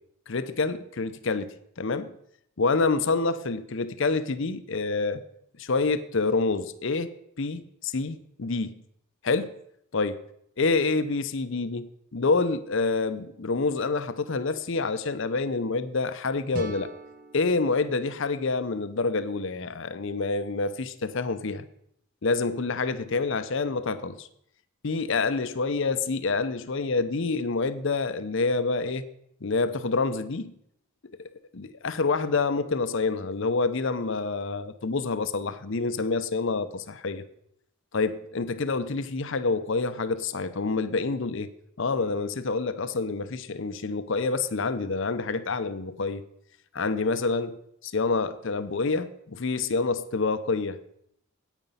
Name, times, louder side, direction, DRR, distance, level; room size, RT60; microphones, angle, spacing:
voice 1, 0.3-2.1 2.6-5.2 5.6-7.1 7.4-8.7 9.2-9.5 9.9-10.2 10.6-16.9 17.3-21.7 22.2-24.3 24.8-29.0 29.4-30.5 31.2-37.2 37.9-41.5 41.8-46.2 46.7-50.8, left 3 dB, 60° left, 12 dB, 0.7 m, -27 dB
sound 1, 16.5-19.4, right 1 dB, 40° right, 1.0 m, -42 dB
9.1 x 9.1 x 5.6 m, 0.72 s
head